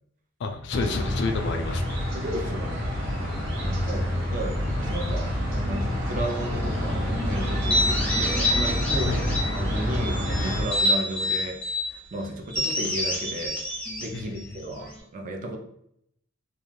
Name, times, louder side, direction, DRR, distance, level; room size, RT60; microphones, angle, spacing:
voice 1, 0.4-2.0 9.1-9.4 14.1-14.2, left 3 dB, 60° left, 5 dB, 0.3 m, -29 dB
sound 1, 0.7-10.6, equal, 75° right, 1.1 m, -27 dB
voice 2, 2.1-2.8 3.6-9.2 9.5-13.6 14.0-15.6, right 1 dB, 40° right, 2 dB, 0.4 m, -34 dB
sound 2, 7.5-9.6 10.0-11.9 12.5-15.0, left 1 dB, 5° left, 0.6 m, -27 dB
2.3 x 2.2 x 3.1 m, 0.71 s
head